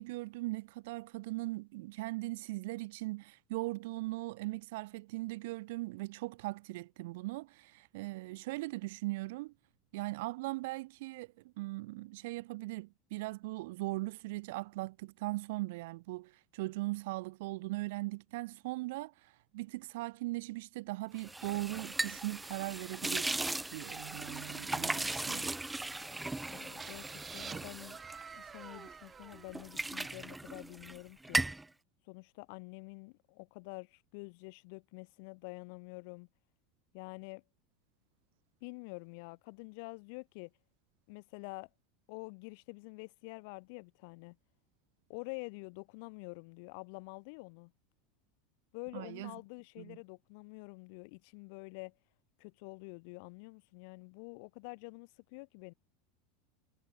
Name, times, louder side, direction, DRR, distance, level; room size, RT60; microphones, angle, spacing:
voice 1, 0.0-9.5 9.9-23.4 23.7-25.5 48.9-49.3 49.8-50.0, right 21 dB, 70° right, 1.7 m, -39 dB
sound 1, 21.2-28.9 29.3-31.0 31.2-31.7, right 2 dB, 10° right, 0.7 m, -37 dB
voice 2, 26.5-28.0 28.3-31.4 32.0-36.3 36.9-37.4 38.6-40.5 41.1-41.7 42.1-44.4 45.1-47.7 48.7-52.0 52.4-55.7, left 32 dB, 65° left, 1.5 m, -47 dB
sound 2, 26.8-30.5, right 6 dB, 25° right, 1.6 m, -49 dB
hypercardioid pair, 95°, 0 cm